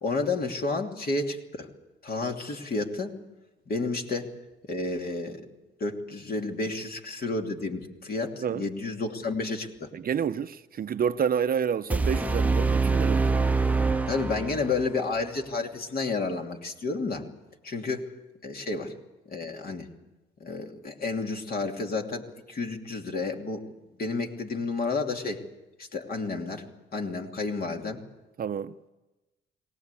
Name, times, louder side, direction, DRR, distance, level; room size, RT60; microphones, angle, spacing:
voice 1, 0.0-1.7 2.0-3.2 3.7-4.3 4.7-5.4 5.8-9.9 13.6-13.7 14.1-17.3 17.6-18.1 18.4-18.9 19.3-19.9 20.4-23.6 23.9-25.4 25.8-26.7 26.9-28.0, left 3 dB, 50° left, 2.9 m, -31 dB
voice 2, 9.9-13.4 28.4-28.7, right 7 dB, 50° right, 0.7 m, -29 dB
sound 1, 11.9-14.9, right 4 dB, 5° right, 0.8 m, -25 dB
23.0 x 18.5 x 8.4 m
cardioid pair, 90°, 20 cm